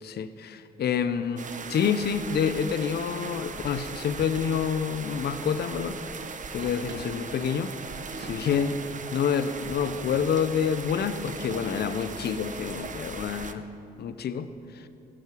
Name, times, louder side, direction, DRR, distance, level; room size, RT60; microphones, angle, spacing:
voice 1, 0.0-6.0 6.5-7.7 8.2-8.8 9.1-13.7 14.0-14.5 14.7-14.9, left 7 dB, 60° left, 12 dB, 0.7 m, -28 dB
sound 1, 1.4-13.5, right 5 dB, 40° right, 0.9 m, -39 dB
sound 2, 6.6-12.9, right 4 dB, 75° right, 1.2 m, -45 dB
16.0 x 6.3 x 6.1 m, 2.8 s
supercardioid pair, 55°, 19 cm